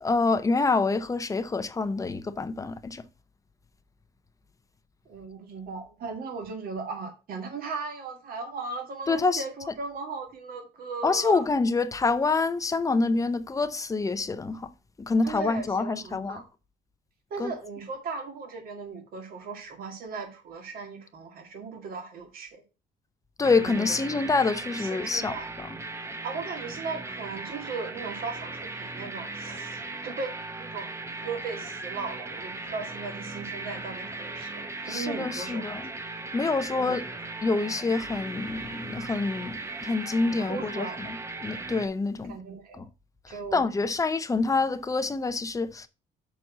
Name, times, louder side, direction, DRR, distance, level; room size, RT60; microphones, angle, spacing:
voice 1, 0.0-3.0 9.1-9.4 11.0-14.7 15.1-16.4 17.4-17.5 23.4-25.4 34.9-35.8 36.3-37.0 37.4-40.9 41.4-42.4 42.8-42.9 43.5-45.9, left 3 dB, 20° left, 0.7 m, -26 dB
voice 2, 5.1-11.5 15.2-16.4 17.3-22.6 23.6-24.2 24.8-25.5 26.2-30.9 31.2-35.8 36.7-37.1 40.4-41.1 42.3-42.8 43.3-43.6, right 4 dB, 60° right, 2.0 m, -37 dB
sound 1, 23.4-41.9, right 3 dB, 15° right, 0.9 m, -38 dB
6.1 x 4.3 x 6.0 m
cardioid pair, 110°, 17 cm